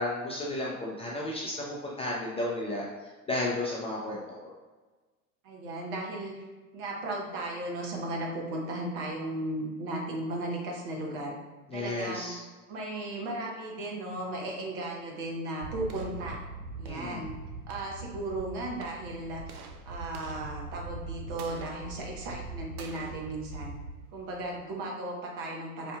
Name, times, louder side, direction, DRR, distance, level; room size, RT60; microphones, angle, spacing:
voice 1, 0.0-4.5 11.7-12.4 16.9-17.2, left 2 dB, 15° left, -4 dB, 0.3 m, -33 dB
voice 2, 5.4-6.4 6.7-11.3 11.7-12.3 12.7-16.4 16.8-17.3 17.7-19.4 19.8-23.7 24.1-26.0, right 1 dB, 60° right, -1 dB, 1.1 m, -36 dB
sound 1, 15.6-24.8, right 3 dB, 80° right, 0.6 m, -42 dB
4.4 x 2.6 x 2.3 m, 1.3 s
hypercardioid pair, 90°, 44 cm